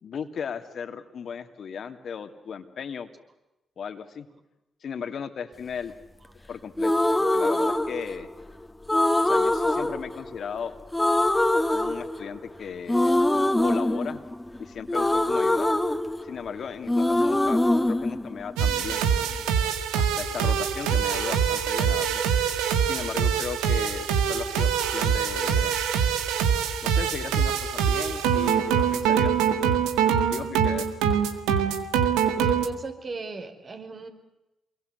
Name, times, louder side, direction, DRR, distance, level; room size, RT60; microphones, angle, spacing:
voice 1, 0.0-3.1 3.8-4.3 4.8-5.9 6.5-6.9 7.2-8.3 9.2-10.7 11.7-13.2 13.6-14.2 14.6-15.7 16.2-17.6 17.9-19.0 20.0-22.2 22.9-25.8 26.8-29.8 30.3-30.9, left 7 dB, 65° left, 9 dB, 2.5 m, -36 dB
sound 1, 6.8-8.4 8.9-10.6 10.9-12.5 12.9-16.6 16.9-18.9, left 1 dB, 15° left, 2.2 m, -23 dB
sound 2, 18.6-32.7, right 7 dB, 85° right, 1.8 m, -24 dB
voice 2, 32.4-34.1, right 3 dB, 50° right, 6 dB, 5.2 m, -35 dB
28.5 x 23.0 x 8.1 m, 0.96 s
hypercardioid pair, 40°, 0 cm